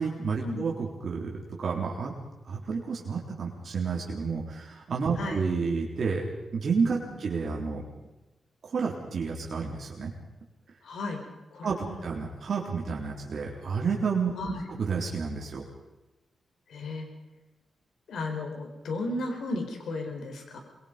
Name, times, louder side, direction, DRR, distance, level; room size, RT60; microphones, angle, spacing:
voice 1, 0.0-2.1 2.5-6.3 6.5-7.8 8.6-10.1 11.6-14.3 14.7-15.7, right 5 dB, 55° right, -2 dB, 3.8 m, -30 dB
voice 2, 10.8-11.2 11.5-12.0 14.4-14.6 16.7-17.1 18.1-20.6, left 2 dB, 90° left, 3 dB, 4.5 m, -34 dB
26.0 x 22.0 x 5.3 m, 1.1 s
wide cardioid pair, 120°, 0 cm